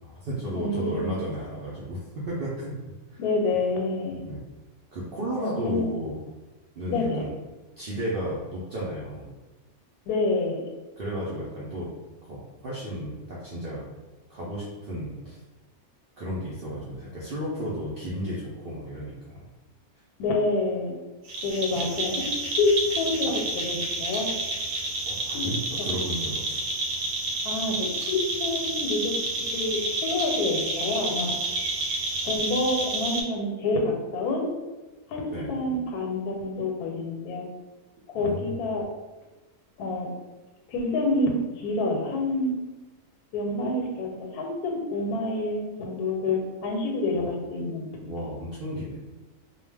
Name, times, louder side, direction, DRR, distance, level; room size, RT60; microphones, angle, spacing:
voice 1, 0.0-2.8 4.2-4.4 4.9-6.2 6.8-7.4 7.8-9.3 11.0-11.9 12.2-13.9 14.3-15.4 16.2-19.5 21.7-21.8 25.1-26.6 35.3-35.6 38.1-38.6 47.1-47.3 48.0-49.0, equal, 75° right, -7 dB, 0.5 m, -33 dB
voice 2, 0.5-1.2 3.2-4.2 5.3-5.8 6.9-7.2 10.1-10.6 20.2-20.9 21.4-24.3 25.3-25.5 25.8-26.0 27.4-29.1 29.5-31.3 32.3-34.5 35.1-37.4 38.1-38.9 39.8-40.1 40.7-42.6 43.3-47.9, left 2 dB, 90° left, 1 dB, 1.1 m, -27 dB
sound 1, 21.3-33.2, right 2 dB, 90° right, 1.2 m, -30 dB
2.3 x 2.2 x 3.3 m, 1.1 s
omnidirectional pair, 1.6 m